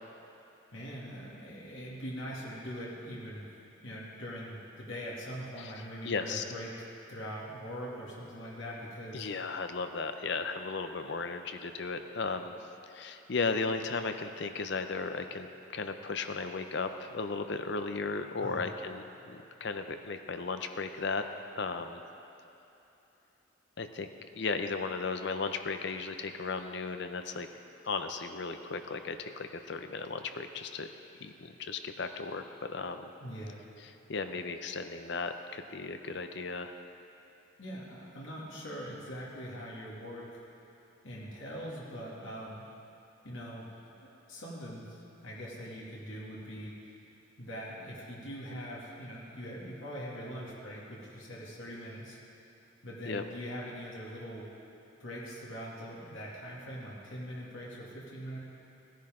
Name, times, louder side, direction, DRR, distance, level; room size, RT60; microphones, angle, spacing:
voice 1, 0.7-3.5 3.8-9.3 18.4-18.7 33.2-33.6 37.6-40.4 41.0-42.7 43.2-47.0 47.4-52.2 52.8-54.5 55.0-58.4, equal, 75° left, -5 dB, 2.3 m, -42 dB
voice 2, 6.0-6.4 9.1-12.5 12.9-15.5 15.7-21.2 21.6-22.0 23.8-24.1 24.3-27.5 27.8-30.9 31.2-32.4 32.7-33.0 34.1-36.7 53.1-53.2, left 4 dB, 55° left, 8 dB, 0.6 m, -35 dB
16.0 x 10.5 x 3.7 m, 3.0 s
head